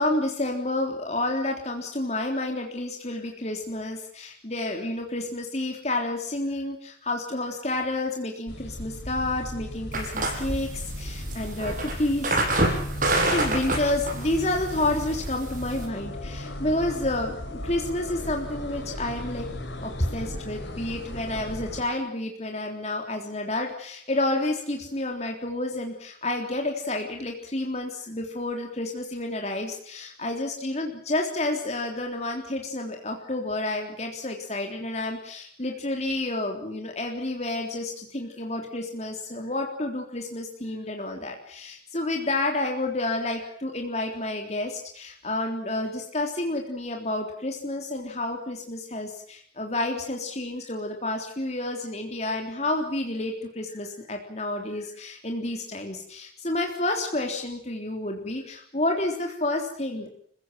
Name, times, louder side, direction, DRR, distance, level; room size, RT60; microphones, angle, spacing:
voice 1, 0.0-12.5 13.3-19.5 19.8-60.1, left 2 dB, 35° left, 2 dB, 3.6 m, -30 dB
sound 1, 8.5-21.8, left 1 dB, 85° left, 4.5 m, -36 dB
sound 2, 9.9-15.9, right 2 dB, 45° right, 7.0 m, -28 dB
29.0 x 16.0 x 9.3 m, 0.63 s
head